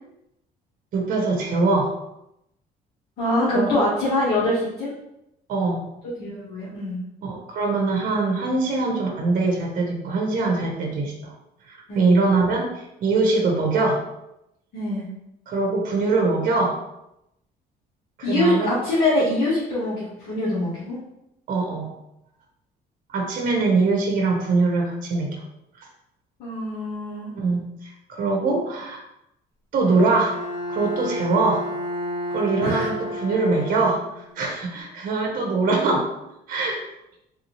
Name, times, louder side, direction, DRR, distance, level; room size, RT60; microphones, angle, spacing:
voice 1, 0.9-1.9 3.5-3.8 5.5-5.9 7.2-11.3 11.7-14.0 15.5-16.8 18.2-18.7 21.5-21.9 23.1-25.4 27.3-29.0 29.7-30.3 30.7-31.6 32.3-34.0 34.3-36.1 36.5-36.8, right 3 dB, 55° right, 0 dB, 0.9 m, -22 dB
voice 2, 3.2-4.9 6.2-7.0 11.9-12.2 14.7-15.1 18.2-21.0 26.4-27.3 32.6-32.9, left 1 dB, 65° left, -9 dB, 1.2 m, -24 dB
Bowed string instrument, 29.9-34.4, equal, 15° left, 1.0 m, -31 dB
3.4 x 2.6 x 3.0 m, 0.85 s
cardioid pair, 110°, 17 cm